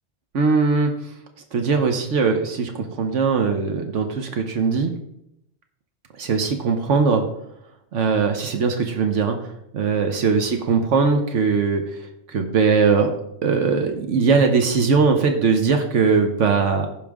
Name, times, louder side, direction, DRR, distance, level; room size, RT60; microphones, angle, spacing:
voice 1, 0.3-0.9 1.5-4.9 6.2-7.2 7.9-9.4 9.7-11.8 12.3-13.1 13.4-16.9, right 5 dB, 80° right, 5 dB, 1.3 m, -20 dB
15.5 x 5.3 x 3.6 m, 0.79 s
omnidirectional pair, 1.2 m